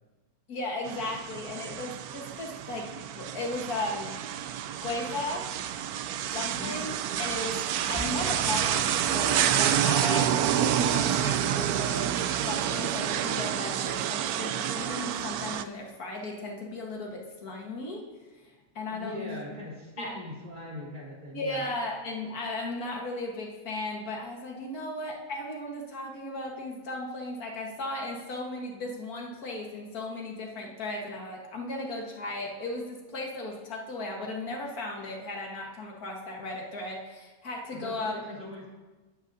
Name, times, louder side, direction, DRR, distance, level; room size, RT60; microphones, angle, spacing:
voice 1, 0.5-2.9 3.2-4.1 4.8-5.5 6.3-7.6 7.9-18.0 18.4-19.5 20.0-20.2 21.3-38.2, left 2 dB, 80° left, 0 dB, 1.9 m, -36 dB
sound 1, 0.9-15.6, right 10 dB, 90° right, 1.1 m, -28 dB
sound 2, 8.0-10.1 10.5-10.6, right 2 dB, 5° right, 0.8 m, -41 dB
voice 2, 18.9-21.6 37.7-38.7, left 1 dB, 30° right, -6 dB, 3.6 m, -41 dB
20.5 x 9.2 x 2.7 m, 1.2 s
omnidirectional pair, 1.5 m